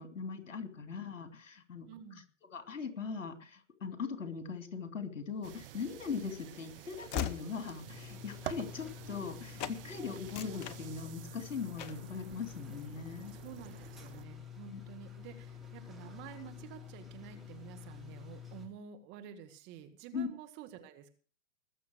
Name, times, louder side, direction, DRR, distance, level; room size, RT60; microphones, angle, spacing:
voice 1, 0.0-1.9 2.5-13.4 14.7-14.8 20.1-20.3, left 5 dB, 70° left, 8 dB, 3.0 m, -40 dB
voice 2, 1.9-2.2 13.4-21.1, right 9 dB, 30° right, 6 dB, 2.0 m, -50 dB
sound 1, 5.4-14.3, right 13 dB, 45° right, 1.0 m, -49 dB
Train / Slam, 5.7-9.3 9.6-9.8 10.2-11.4 11.8-12.1, left 9 dB, 15° left, 0.6 m, -42 dB
sound 2, 7.8-18.7, left 8 dB, ahead, 3.2 m, -49 dB
20.0 x 7.2 x 6.4 m, 0.40 s
hypercardioid pair, 125°, 38 cm